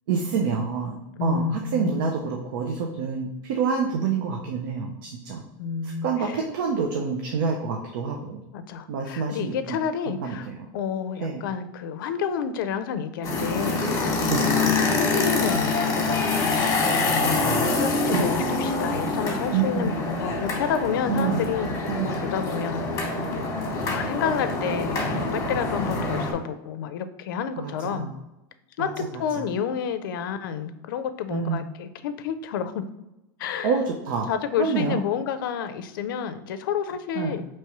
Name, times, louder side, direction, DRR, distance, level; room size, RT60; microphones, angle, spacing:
voice 1, 0.1-5.4 6.0-8.4 8.9-9.6 10.1-10.7 11.2-11.4 14.3-14.5 17.2-17.6 18.1-18.3 19.5-19.9 21.1-21.4 21.9-22.1 27.6-28.1 28.8-28.9 29.4-29.5 31.3-31.6 33.6-34.3 34.6-35.0 37.2-37.4, right 5 dB, 80° right, 1 dB, 0.6 m, -27 dB
voice 2, 1.1-2.2 5.6-6.4 8.5-23.1 23.8-28.1 28.8-32.9 33.4-33.8 34.3-37.4, left 7 dB, 90° left, 11 dB, 0.4 m, -30 dB
sound 1, 13.2-26.3, left 3 dB, 30° left, 1.1 m, -25 dB
4.6 x 3.0 x 2.9 m, 0.94 s
supercardioid pair, 150°, 11 cm